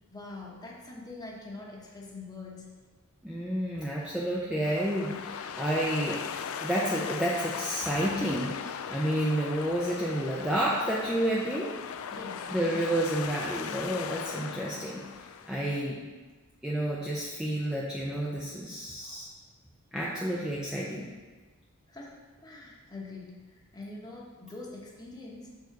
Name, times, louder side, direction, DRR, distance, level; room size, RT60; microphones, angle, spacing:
voice 1, 0.1-2.7 12.1-13.0 15.2-15.3 21.9-25.5, left 2 dB, 20° left, -3 dB, 1.1 m, -44 dB
voice 2, 3.2-6.2 6.6-11.8 12.5-15.0 15.5-16.1 16.6-19.3 19.9-21.1, right 1 dB, 5° right, -5 dB, 0.6 m, -30 dB
sound 1, 4.6-15.8, left 7 dB, 80° left, 0.4 m, -38 dB
6.5 x 4.7 x 4.6 m, 1.4 s
head